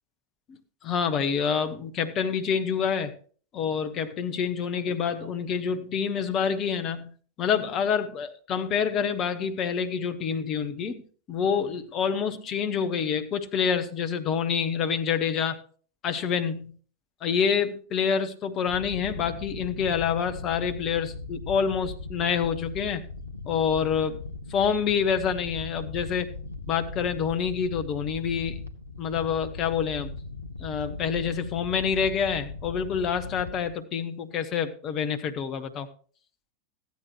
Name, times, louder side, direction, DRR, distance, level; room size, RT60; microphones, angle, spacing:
voice 1, 0.8-3.2 3.5-7.1 7.4-11.0 11.3-15.6 16.0-16.8 17.2-23.0 23.5-24.2 24.5-26.3 26.7-28.6 29.0-30.1 30.6-35.9, left 7 dB, 30° left, 7 dB, 0.8 m, -27 dB
sound 1, 18.7-33.7, left 3 dB, 80° left, 0.7 m, -39 dB
13.5 x 9.3 x 3.1 m, 0.43 s
figure-of-eight pair, 90°, 0 cm